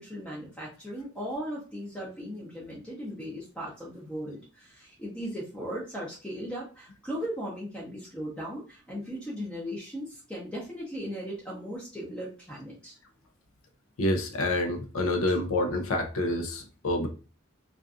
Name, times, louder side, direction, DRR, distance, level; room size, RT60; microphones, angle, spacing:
voice 1, 0.0-13.0, equal, 5° left, -5 dB, 0.6 m, -37 dB
voice 2, 14.0-17.1, left 1 dB, 75° left, 4 dB, 0.5 m, -27 dB
2.5 x 2.4 x 2.4 m, 0.34 s
head